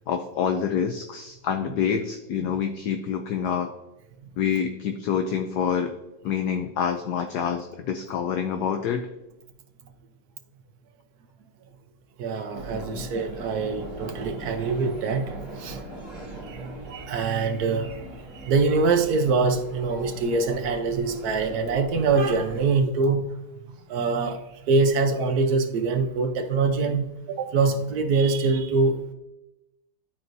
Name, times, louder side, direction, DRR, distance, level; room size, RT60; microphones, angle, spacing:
voice 1, 0.0-3.7 4.4-5.9 6.2-9.1 12.7-13.1, left 7 dB, 70° left, 1.0 m, -27 dB
voice 2, 12.2-15.8 16.4-23.3 23.6-29.0, right 4 dB, 60° right, 1.1 m, -24 dB
sound 1, 12.5-22.7, right 1 dB, 45° left, 2.7 m, -40 dB
12.0 x 4.5 x 2.6 m
omnidirectional pair, 2.1 m